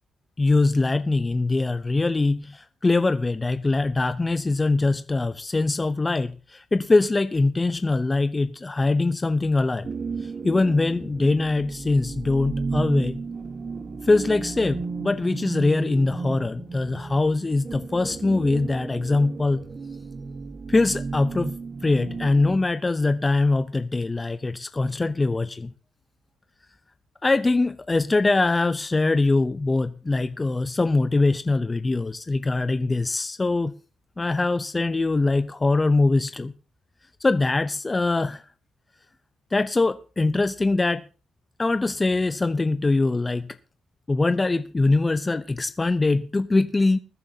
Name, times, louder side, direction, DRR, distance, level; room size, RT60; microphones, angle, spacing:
voice 1, 0.4-9.9 10.2-13.2 14.0-19.6 20.7-21.5 21.8-25.7 27.2-33.7 34.2-36.5 37.2-38.4 39.5-41.0 41.6-43.5 44.1-47.0, left 3 dB, 20° left, 0.6 m, -22 dB
sound 1, 9.8-22.6, right 4 dB, 35° right, 1.3 m, -33 dB
20.5 x 10.5 x 2.8 m
cardioid pair, 90°, 0 cm